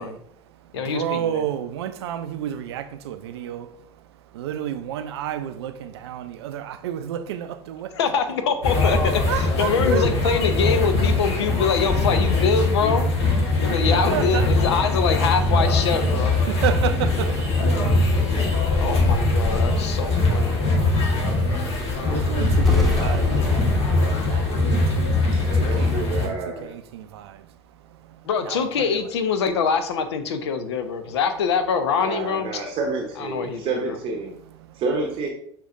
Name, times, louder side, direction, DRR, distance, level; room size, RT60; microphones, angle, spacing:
voice 1, 0.0-8.0 9.0-10.4 13.5-14.5 16.5-19.9 20.2-29.1 31.0-31.2 34.4-34.8, right 10 dB, 65° right, 0.4 m, -33 dB
voice 2, 0.7-1.4 7.9-13.1 13.6-16.4 18.4-20.8 28.2-32.5 33.2-33.9, left 6 dB, 70° left, 0.5 m, -24 dB
sound 1, 8.6-26.3, left 2 dB, 45° left, 1.3 m, -21 dB
sound 2, 22.6-25.5 25.8-25.9, left 1 dB, ahead, 1.1 m, -29 dB
voice 3, 25.4-26.7 32.0-34.3 34.7-35.3, right 3 dB, 40° right, 0.8 m, -29 dB
6.3 x 2.9 x 2.5 m
figure-of-eight pair, 75°, 15 cm